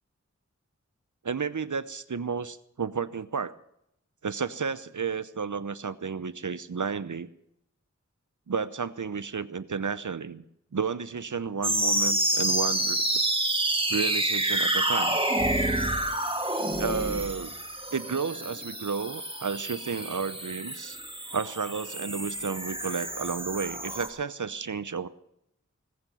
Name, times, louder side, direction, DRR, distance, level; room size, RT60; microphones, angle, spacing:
voice 1, 1.2-3.5 4.2-7.3 8.5-10.4 10.7-13.0 13.9-15.2 16.8-17.5 17.9-21.0 21.3-25.1, right 5 dB, 85° right, 14 dB, 0.8 m, -32 dB
sound 1, 11.6-24.1, right 1 dB, 20° right, 1.9 m, -28 dB
19.0 x 9.2 x 7.1 m, 0.76 s
wide cardioid pair, 50°, 30 cm